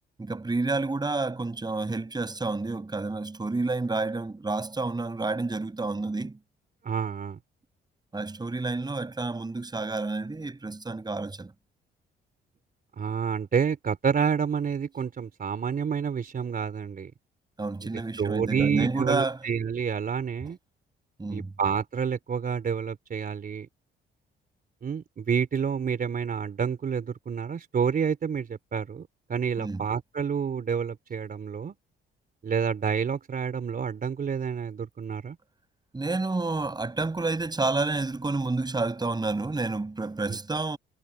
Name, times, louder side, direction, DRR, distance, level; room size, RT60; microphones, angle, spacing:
voice 1, 0.2-6.4 8.1-11.5 17.6-19.4 21.2-21.5 29.6-29.9 35.9-40.8, right 3 dB, 20° right, 7.0 m, -29 dB
voice 2, 6.8-7.4 13.0-17.1 17.8-17.9 18.2-20.6 21.3-23.7 24.8-31.7 32.4-35.4 40.3-40.4, right 6 dB, 45° right, 3.7 m, -29 dB
cardioid pair, 90°, 20 cm